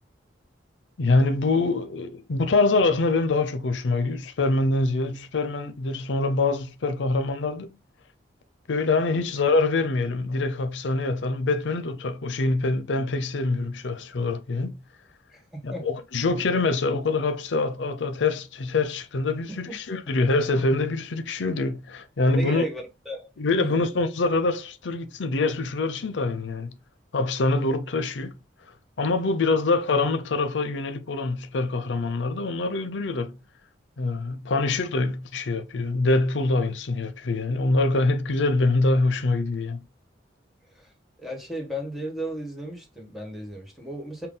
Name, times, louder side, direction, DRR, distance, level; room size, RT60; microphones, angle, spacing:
voice 1, 1.0-7.8 8.7-14.8 15.6-22.6 23.4-26.7 27.1-28.4 29.0-33.4 34.0-39.8, left 3 dB, 90° left, 0.6 m, -25 dB
voice 2, 15.3-15.9 19.5-19.8 22.4-23.3 34.5-34.6 40.7-40.9 41.2-44.3, equal, ahead, 1.4 m, -35 dB
5.7 x 2.2 x 3.8 m
head